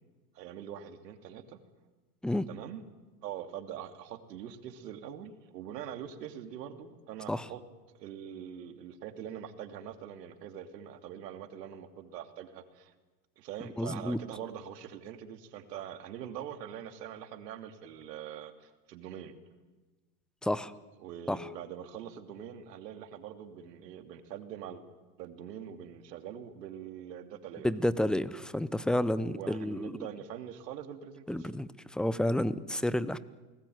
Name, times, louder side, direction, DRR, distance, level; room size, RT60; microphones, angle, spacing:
voice 1, 0.3-1.6 2.5-2.8 3.2-7.6 7.9-12.9 13.4-19.3 21.0-24.8 25.2-27.7 29.2-31.5, right 9 dB, 75° right, 8 dB, 2.9 m, -43 dB
voice 2, 13.8-14.2 20.4-20.7 21.3-21.4 27.6-29.9 31.3-33.2, left 1 dB, ahead, 16 dB, 0.8 m, -30 dB
28.5 x 20.0 x 9.4 m, 1.2 s
hypercardioid pair, 120°, 50 cm